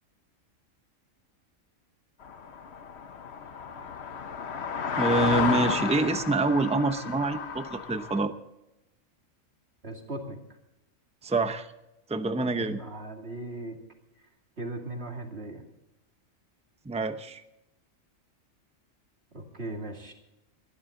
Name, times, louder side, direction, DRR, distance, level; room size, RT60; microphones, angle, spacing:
sound 1, 2.2-8.2, left 6 dB, 55° left, 1.2 m, -32 dB
voice 1, 5.0-8.3 11.2-11.7 12.1-12.8 16.8-17.4, right 3 dB, 5° right, 9 dB, 0.6 m, -26 dB
voice 2, 9.8-10.4 12.5-13.8 14.6-15.6 19.3-20.1, right 2 dB, 50° right, 2 dB, 2.8 m, -38 dB
20.5 x 13.0 x 3.8 m, 0.92 s
omnidirectional pair, 1.4 m